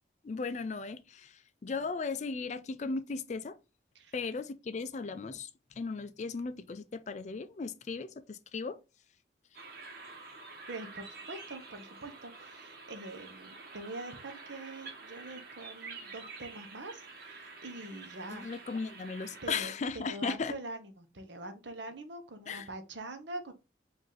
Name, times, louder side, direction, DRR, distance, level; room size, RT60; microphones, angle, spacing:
voice 1, 0.2-3.6 4.1-5.5 5.8-8.8 18.3-20.5 22.5-22.7, left 4 dB, 40° left, 0.4 m, -36 dB
sound 1, 9.5-19.6, right 4 dB, 50° right, 1.1 m, -48 dB
voice 2, 10.7-18.5 19.4-23.5, right 2 dB, 75° right, 0.9 m, -44 dB
5.2 x 2.6 x 3.9 m
head